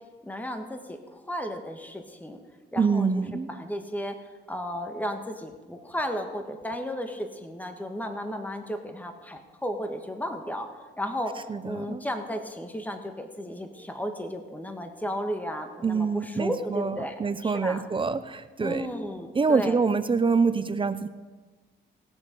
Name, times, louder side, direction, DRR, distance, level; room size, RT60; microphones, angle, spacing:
voice 1, 0.2-2.4 2.7-3.1 3.5-4.2 4.5-10.7 11.0-11.3 11.6-17.8 18.6-19.8, equal, 10° left, 5 dB, 1.5 m, -34 dB
voice 2, 2.8-3.5 11.5-12.0 15.8-18.9 19.3-21.1, right 5 dB, 25° right, 12 dB, 0.6 m, -26 dB
19.0 x 7.1 x 5.3 m, 1.3 s
cardioid pair, 90°, 20 cm